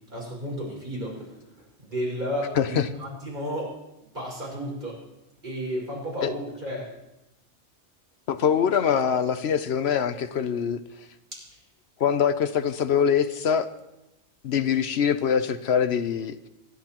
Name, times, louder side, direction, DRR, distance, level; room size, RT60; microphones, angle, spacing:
voice 1, 0.1-1.4 1.8-3.8 4.1-5.0 5.4-6.9 11.3-11.4, equal, 45° right, -3 dB, 5.6 m, -32 dB
voice 2, 2.6-2.9 6.2-6.3 8.3-10.8 12.0-13.7 14.4-16.5, left 7 dB, 70° left, 11 dB, 0.9 m, -23 dB
26.5 x 12.0 x 3.0 m, 0.94 s
omnidirectional pair, 1.2 m